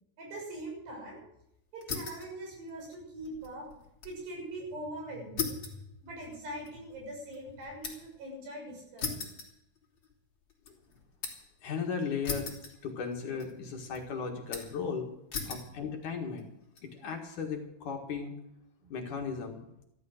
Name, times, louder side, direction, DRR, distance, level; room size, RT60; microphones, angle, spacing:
voice 1, 0.2-1.2 1.7-3.7 4.0-5.6 6.0-9.3 15.5-15.6 18.8-18.9, right 1 dB, 85° right, 0 dB, 8.7 m, -42 dB
sound 1, 1.8-2.3 2.7-4.2 4.5-4.6 5.4-8.2 9.0-10.1 10.5-11.5 12.2-13.1 13.4-14.0 14.5-14.9 15.3-15.7 16.4-16.8, left 5 dB, 30° left, 3.2 m, -39 dB
voice 2, 11.6-12.5 12.8-15.1 15.5-16.5 16.8-18.3 18.9-19.6, left 5 dB, 55° left, 2 dB, 3.0 m, -36 dB
14.5 x 12.5 x 6.6 m, 0.80 s
omnidirectional pair, 4.6 m